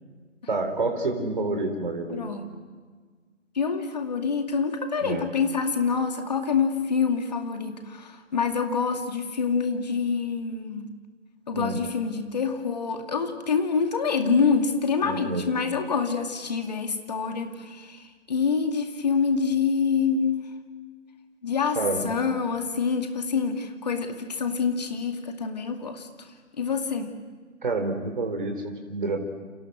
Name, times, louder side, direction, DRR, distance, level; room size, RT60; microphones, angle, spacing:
voice 1, 0.5-2.3 5.0-5.3 11.5-11.8 15.0-15.5 21.8-22.0 27.6-29.2, right 3 dB, 40° right, 4 dB, 4.1 m, -28 dB
voice 2, 2.1-2.5 3.6-10.9 11.5-18.0 18.3-20.5 21.4-21.8 22.0-26.1 26.6-27.1, left 5 dB, 35° left, 5 dB, 2.4 m, -26 dB
30.0 x 28.0 x 6.4 m, 1.5 s
figure-of-eight pair, 160°, 37 cm